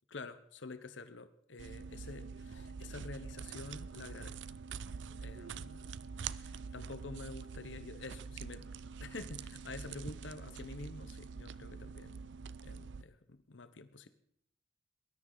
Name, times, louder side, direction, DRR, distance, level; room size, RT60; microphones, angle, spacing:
voice 1, 0.1-4.6 5.1-5.9 6.3-8.7 9.0-12.2 12.6-14.1, left 3 dB, 75° left, 11 dB, 0.9 m, -48 dB
sound 1, 1.6-13.0, right 5 dB, 70° right, 0.5 m, -45 dB
20.0 x 13.0 x 3.9 m, 0.67 s
head